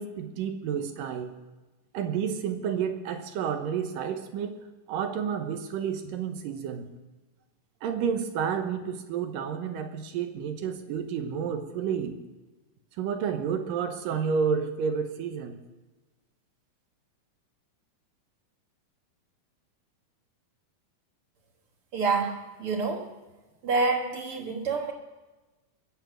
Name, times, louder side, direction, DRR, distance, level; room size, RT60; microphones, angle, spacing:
voice 1, 0.0-1.3 1.9-4.6 4.9-6.9 7.8-12.2 13.0-15.6, right 7 dB, 85° right, 7 dB, 2.8 m, -30 dB
voice 2, 21.9-23.1 23.6-24.9, right 4 dB, 50° right, 3 dB, 2.0 m, -27 dB
21.0 x 7.1 x 7.7 m, 1.1 s
omnidirectional pair, 3.9 m